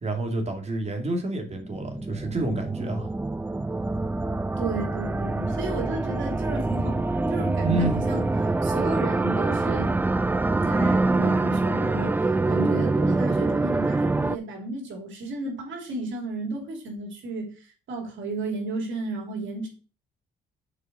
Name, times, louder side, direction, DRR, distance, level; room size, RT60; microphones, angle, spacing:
voice 1, 0.0-3.1 7.6-8.0, right 2 dB, 35° right, 3 dB, 2.6 m, -28 dB
sound 1, 1.6-14.4, right 2 dB, 10° right, 0.3 m, -25 dB
voice 2, 4.6-8.2 8.6-10.0 10.6-19.7, right 3 dB, 75° right, 1 dB, 3.0 m, -33 dB
6.5 x 4.8 x 6.6 m, 0.36 s
cardioid pair, 90°, 20 cm